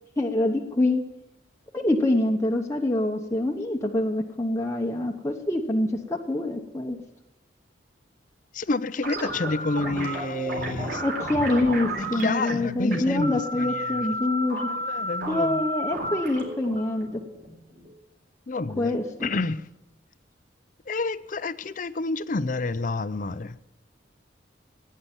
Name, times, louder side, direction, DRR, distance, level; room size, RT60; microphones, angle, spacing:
voice 1, 0.2-1.0 1.7-7.0 11.0-14.7 15.3-17.2 18.8-19.3, left 1 dB, 15° left, 1.0 m, -25 dB
voice 2, 8.5-11.0 12.1-14.1 14.7-15.6 18.5-19.0 19.2-19.6 20.9-23.6, left 3 dB, 45° left, 0.5 m, -29 dB
sound 1, 9.0-17.9, right 1 dB, 55° right, 3.8 m, -32 dB
16.5 x 9.6 x 7.2 m
head